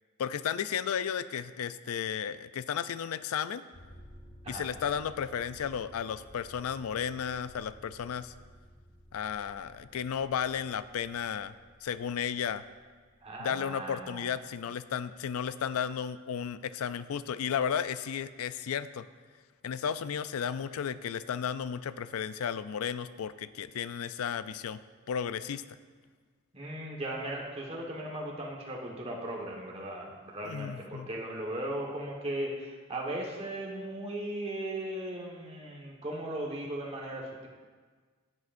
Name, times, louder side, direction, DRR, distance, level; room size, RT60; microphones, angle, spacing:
voice 1, 0.2-3.6 4.5-8.3 9.1-11.5 11.8-12.6 13.4-19.1 19.6-24.8 25.1-25.6 30.4-31.1, left 8 dB, 80° left, 14 dB, 0.4 m, -34 dB
sound 1, 3.7-14.5, equal, 60° left, 2.0 m, -55 dB
voice 2, 13.2-14.3 26.5-37.5, right 1 dB, 30° right, -2 dB, 1.4 m, -37 dB
13.5 x 7.8 x 2.6 m, 1.5 s
head